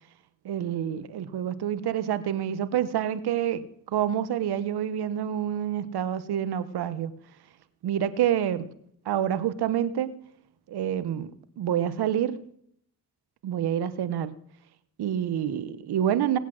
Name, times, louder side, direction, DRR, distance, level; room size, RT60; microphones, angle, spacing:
voice 1, 0.4-7.1 7.8-8.7 9.1-10.1 10.7-11.3 11.6-12.4 13.4-14.3 15.0-16.4, right 10 dB, 75° right, 13 dB, 1.1 m, -27 dB
18.5 x 8.2 x 6.3 m, 0.68 s
cardioid pair, 60°, 39 cm